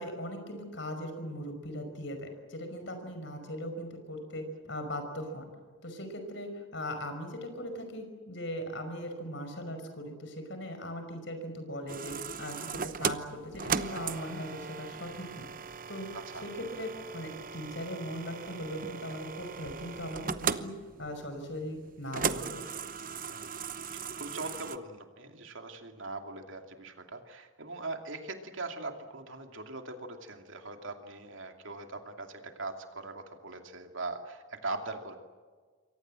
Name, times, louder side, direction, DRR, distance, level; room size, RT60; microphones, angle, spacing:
voice 1, 0.0-5.5 5.8-15.5 15.9-16.1 16.4-20.7 21.0-22.7, equal, 60° left, 6 dB, 5.5 m, -39 dB
sound 1, 11.9-24.8, right 6 dB, 40° right, 0.9 m, -37 dB
voice 2, 23.3-23.7 23.9-35.1, right 2 dB, 70° right, 5 dB, 2.7 m, -41 dB
27.5 x 23.5 x 7.7 m, 1.5 s
head